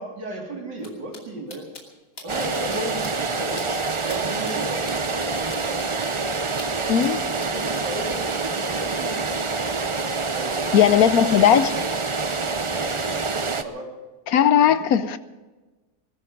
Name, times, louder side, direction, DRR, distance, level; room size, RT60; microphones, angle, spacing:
voice 1, 0.0-1.7 2.2-3.8 4.0-5.9 7.3-9.4 10.3-11.2 12.6-13.2 13.5-13.9 14.6-15.2, right 1 dB, 90° right, 0 dB, 3.9 m, -35 dB
sound 1, 0.8-1.2 1.5-1.8 2.2-2.8 3.0-3.1 3.6-3.7 4.1-4.2 4.5-7.1 7.4-7.8, left 3 dB, 50° left, 3.1 m, -41 dB
sound 2, 2.3-13.6, right 4 dB, 55° right, 0.3 m, -26 dB
voice 2, 10.7-11.8 14.3-15.2, left 9 dB, 65° left, 13 dB, 1.0 m, -17 dB
20.5 x 13.0 x 5.1 m, 1.2 s
omnidirectional pair, 1.8 m